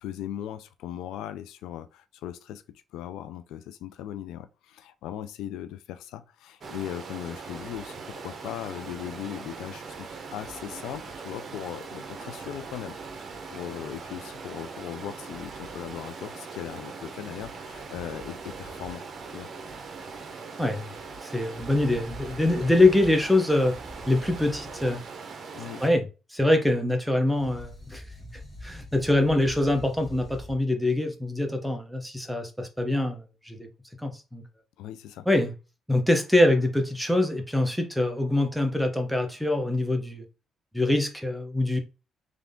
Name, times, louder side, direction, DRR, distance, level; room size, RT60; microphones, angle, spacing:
voice 1, 0.0-19.0 19.3-19.5 25.5-25.8 34.8-35.3, left 11 dB, 90° left, 0.4 m, -38 dB
Stream, 6.6-25.9, right 4 dB, 50° right, 1.0 m, -41 dB
voice 2, 20.6-20.9 21.2-23.8 24.1-25.0 25.8-26.0 26.3-28.0 28.6-33.7 34.0-34.4 35.3-35.5 35.9-40.2 40.7-41.8, left 1 dB, ahead, 1.0 m, -24 dB
sound 1, 21.5-25.0 27.3-30.5, left 1 dB, 35° left, 1.9 m, -44 dB
3.6 x 3.4 x 3.7 m
cardioid pair, 90°, 0 cm